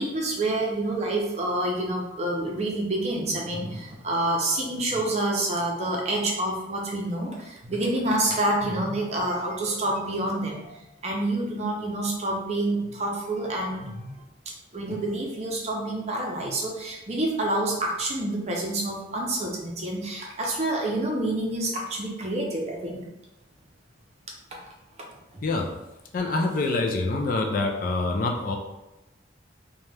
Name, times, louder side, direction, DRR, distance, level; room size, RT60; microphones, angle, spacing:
voice 1, 0.0-10.8 11.0-14.1 14.7-23.0 24.5-24.6 25.3-25.4, right 1 dB, 35° right, -1 dB, 0.5 m, -28 dB
voice 2, 26.1-28.6, left 3 dB, 45° left, 2 dB, 0.3 m, -25 dB
2.9 x 2.2 x 3.2 m, 0.96 s
head